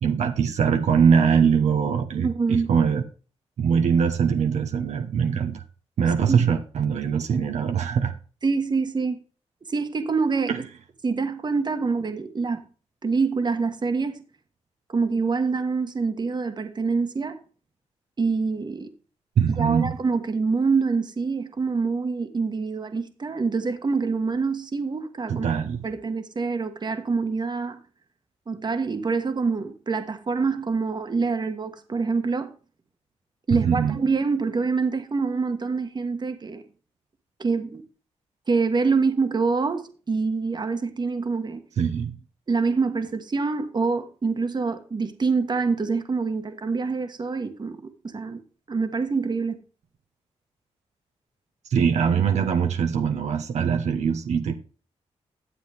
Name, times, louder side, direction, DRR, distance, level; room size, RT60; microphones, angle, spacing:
voice 1, 0.0-3.0 3.6-5.6 6.0-8.1 10.5-10.6 19.4-19.9 25.3-25.8 33.5-34.0 41.8-42.2 51.7-54.5, right 7 dB, 80° right, 1.1 m, -22 dB
voice 2, 2.2-2.7 6.3-6.4 8.4-9.2 9.7-10.6 11.0-12.6 13.0-14.2 14.9-17.4 18.2-18.9 19.6-25.5 25.8-27.8 28.5-32.5 33.5-36.6 37.4-37.8 38.5-41.6 42.5-48.4 48.7-49.6, right 4 dB, 40° right, 1.5 m, -25 dB
11.5 x 7.7 x 3.5 m
cardioid pair, 80°, 12 cm